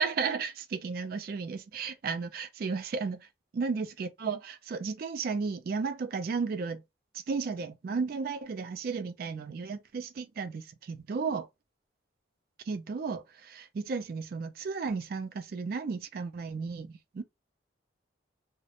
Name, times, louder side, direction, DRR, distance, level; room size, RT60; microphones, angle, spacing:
voice 1, 0.0-3.3 3.5-6.8 7.1-11.5 12.7-17.2, right 5 dB, 50° right, 0.3 m, -34 dB
2.4 x 2.0 x 2.8 m
head